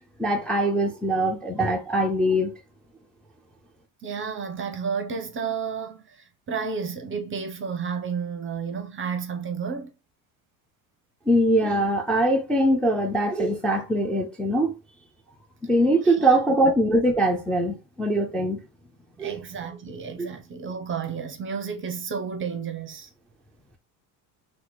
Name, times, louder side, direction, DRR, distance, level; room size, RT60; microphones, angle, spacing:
voice 1, 0.2-2.5 11.3-14.7 15.6-18.6 19.2-19.4 20.2-20.3, right 1 dB, ahead, 0.4 m, -22 dB
voice 2, 4.0-9.9 16.0-16.4 19.2-23.1, right 6 dB, 25° right, 0.7 m, -32 dB
2.8 x 2.3 x 4.0 m
hypercardioid pair, 75°, 50 cm